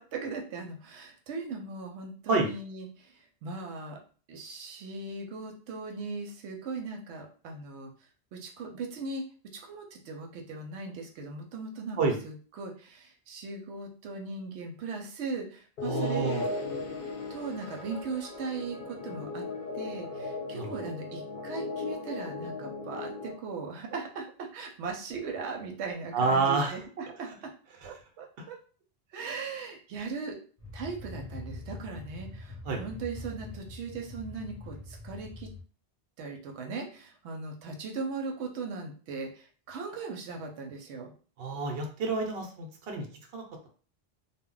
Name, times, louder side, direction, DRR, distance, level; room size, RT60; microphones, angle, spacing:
voice 1, 0.0-3.1 3.4-4.0 4.3-7.9 8.3-9.2 9.6-12.0 12.2-16.5 17.3-19.4 19.7-27.5 27.8-28.6 29.1-30.4 30.7-35.5 36.2-41.1, right 4 dB, 90° right, 2 dB, 0.9 m, -38 dB
sound 1, 15.8-23.3, left 3 dB, 50° left, 0.7 m, -37 dB
voice 2, 15.8-16.4 20.5-20.7 26.1-26.8 32.6-32.8 41.4-43.1 43.3-43.4, right 4 dB, 65° right, 3 dB, 0.8 m, -28 dB
sound 2, 30.6-35.6, left 2 dB, 15° left, 0.9 m, -43 dB
2.2 x 2.0 x 3.7 m, 0.41 s
omnidirectional pair, 1.1 m